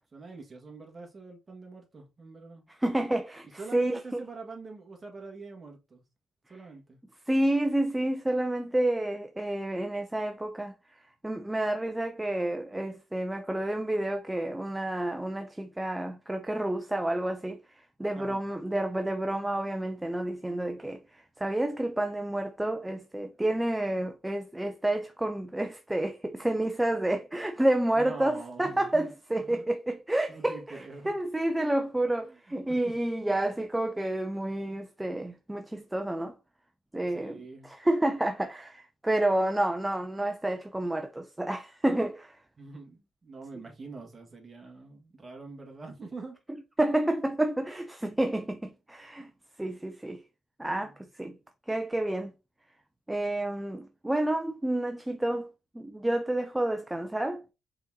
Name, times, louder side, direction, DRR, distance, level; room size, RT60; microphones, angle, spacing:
voice 1, 0.1-2.6 3.5-6.0 6.5-7.0 18.1-18.4 27.9-29.7 30.3-31.2 32.2-32.4 32.7-32.9 37.1-37.7 42.6-46.4 49.2-49.3 50.8-51.0, right 3 dB, 30° right, 1.5 m, -45 dB
voice 2, 2.8-4.2 7.3-11.0 11.2-36.4 36.9-37.4 37.6-42.4 46.8-49.3 49.6-50.2 50.6-51.4 51.7-52.3 53.1-55.5 55.7-57.4, right 1 dB, 10° right, 0.4 m, -29 dB
5.4 x 3.6 x 2.7 m
cardioid pair, 90°, 0 cm